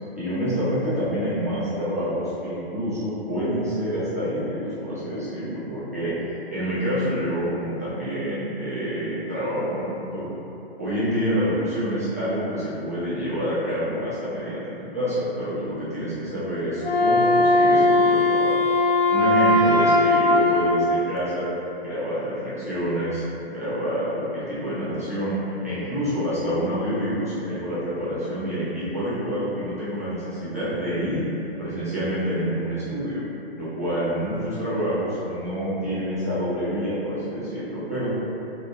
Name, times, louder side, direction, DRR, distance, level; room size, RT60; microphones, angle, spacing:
voice 1, 0.2-10.3 10.8-18.6 19.1-21.5 21.8-31.3 31.6-33.2 33.6-38.1, equal, 15° right, -13 dB, 0.3 m, -27 dB
Wind instrument woodwind instrument, 16.8-20.9, left 2 dB, 65° left, 0.5 m, -19 dB
2.6 x 2.5 x 2.5 m, 3.0 s
figure-of-eight pair, 130°, 31 cm